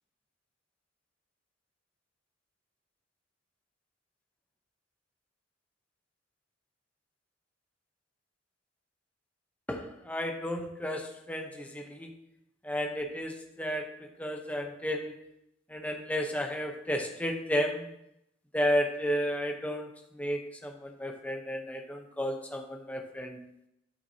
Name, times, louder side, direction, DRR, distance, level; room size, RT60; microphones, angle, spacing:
voice 1, 9.7-12.1 12.6-15.1 15.7-17.9 18.5-19.9 20.1-23.4, equal, 5° left, 3 dB, 0.9 m, -33 dB
12.5 x 5.8 x 2.8 m, 0.80 s
head